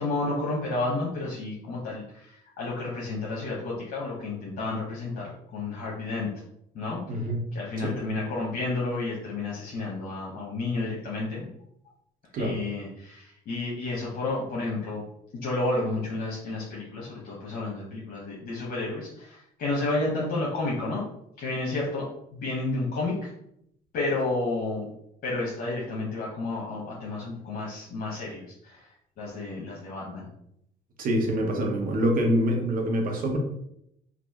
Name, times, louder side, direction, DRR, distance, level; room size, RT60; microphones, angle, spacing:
voice 1, 0.0-6.3 6.7-7.2 7.5-11.5 12.4-15.0 15.3-21.0 21.4-23.3 23.9-24.9 25.2-28.9 29.2-30.3, left 2 dB, 60° left, -5 dB, 0.9 m, -31 dB
voice 2, 7.1-7.4 7.8-8.0 12.3-12.6 31.0-33.4, equal, 55° right, 2 dB, 0.9 m, -25 dB
3.0 x 2.4 x 3.5 m, 0.75 s
cardioid pair, 110°, 17 cm